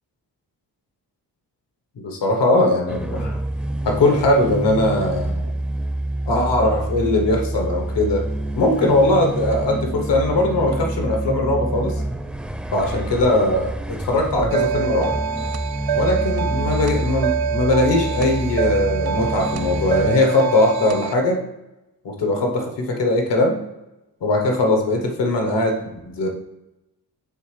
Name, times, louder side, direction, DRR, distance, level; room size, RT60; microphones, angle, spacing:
voice 1, 2.0-3.4 3.8-5.4 6.3-8.2 8.5-12.0 12.7-15.1 15.9-21.4 22.0-23.6 24.2-26.3, left 2 dB, 85° left, 2 dB, 1.1 m, -20 dB
sound 1, 2.9-20.1, right 1 dB, 5° right, 0.4 m, -27 dB
sound 2, 14.5-21.1, right 8 dB, 65° right, 0.5 m, -26 dB
9.4 x 3.6 x 3.2 m, 0.95 s
cardioid pair, 55°, 41 cm